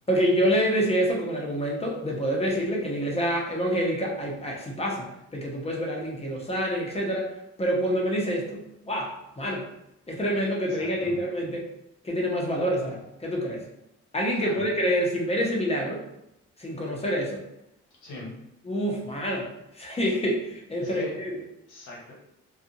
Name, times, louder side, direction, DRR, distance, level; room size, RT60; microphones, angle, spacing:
voice 1, 0.1-5.1 5.3-7.3 7.6-9.7 10.1-11.6 12.0-13.6 14.1-16.0 16.6-17.4 18.6-19.5 19.7-21.3, equal, 20° left, -2 dB, 0.7 m, -27 dB
voice 2, 10.7-11.2 14.4-14.7 18.0-18.3 20.8-21.1 21.7-22.1, left 2 dB, 75° left, -4 dB, 1.2 m, -41 dB
2.5 x 2.4 x 2.7 m, 0.82 s
cardioid pair, 90°, 30 cm